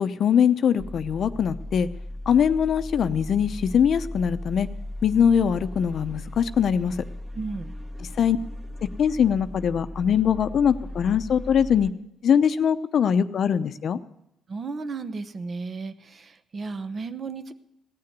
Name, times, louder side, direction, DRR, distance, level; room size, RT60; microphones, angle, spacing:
voice 1, 0.0-1.9 2.3-4.7 5.0-7.0 8.2-8.4 9.0-11.9 12.2-14.0, left 8 dB, 60° left, 12 dB, 0.7 m, -22 dB
sound 1, 0.8-11.9, left 1 dB, 25° right, 1.6 m, -37 dB
voice 2, 7.3-7.8 14.5-17.5, right 4 dB, 45° right, 11 dB, 0.9 m, -34 dB
17.0 x 6.8 x 9.4 m, 0.82 s
cardioid pair, 90°, 0 cm